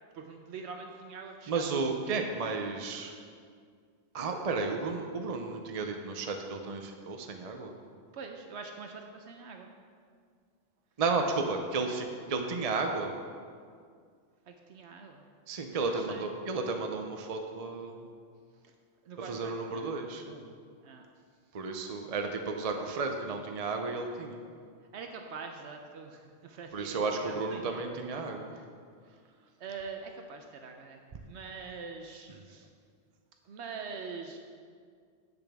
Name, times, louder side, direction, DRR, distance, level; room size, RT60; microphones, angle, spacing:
voice 1, 0.1-1.9 8.1-9.7 14.5-15.2 15.8-16.3 19.0-19.9 20.8-21.1 21.8-22.0 22.6-22.8 24.9-27.8 28.2-28.7 29.6-32.7 33.5-34.4, right 5 dB, 75° right, 3 dB, 0.9 m, -44 dB
voice 2, 1.5-3.1 4.1-7.7 11.0-13.1 15.5-18.0 19.3-20.4 21.5-24.4 26.7-28.5, right 4 dB, 40° right, 4 dB, 0.6 m, -33 dB
10.5 x 7.9 x 3.5 m, 2.1 s
omnidirectional pair, 1.2 m